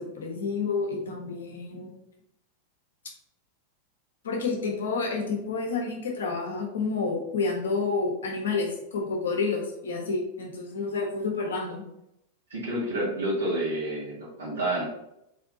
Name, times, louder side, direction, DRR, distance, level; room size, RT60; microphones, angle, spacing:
voice 1, 0.0-1.9 4.2-11.8, left 4 dB, 65° left, 1 dB, 1.1 m, -29 dB
voice 2, 12.5-14.8, right 1 dB, 70° right, -7 dB, 1.8 m, -29 dB
3.8 x 3.5 x 3.9 m, 0.83 s
figure-of-eight pair, 90°, 0 cm